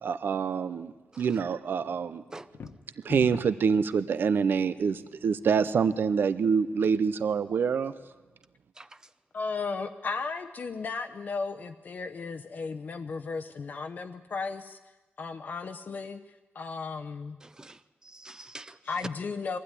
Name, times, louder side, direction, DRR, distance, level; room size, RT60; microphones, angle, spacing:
voice 1, 0.0-2.2 3.0-7.9, right 6 dB, 65° right, 14 dB, 0.7 m, -26 dB
sound 1, 2.4-3.7, left 5 dB, 70° left, 1.4 m, -42 dB
voice 2, 8.8-9.1 17.4-18.8, right 2 dB, 15° right, 14 dB, 0.7 m, -47 dB
voice 3, 9.3-14.8 15.2-16.2 16.5-17.4 18.9-19.6, left 4 dB, 50° left, 6 dB, 0.8 m, -35 dB
22.0 x 15.5 x 9.9 m, 1.2 s
wide cardioid pair, 170°, 4 cm